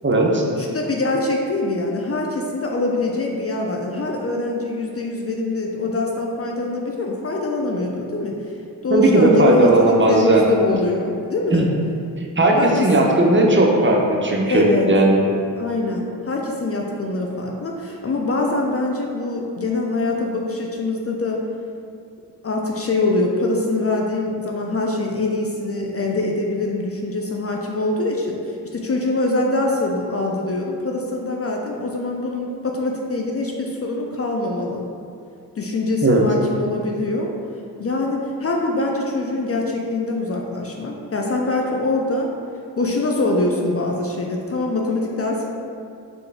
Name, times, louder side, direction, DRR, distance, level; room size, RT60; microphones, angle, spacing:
voice 1, 0.0-0.4 8.9-10.5 11.5-11.7 12.4-15.2 36.0-36.2, right 2 dB, 25° right, -1 dB, 0.7 m, -16 dB
voice 2, 0.6-8.4 8.8-11.7 12.6-13.2 14.5-14.9 15.6-21.4 22.4-34.9 35.6-37.3 37.8-42.3 42.8-45.5, left 2 dB, 35° left, 0 dB, 0.5 m, -24 dB
3.8 x 3.3 x 3.4 m, 2.4 s
supercardioid pair, 40°, 43 cm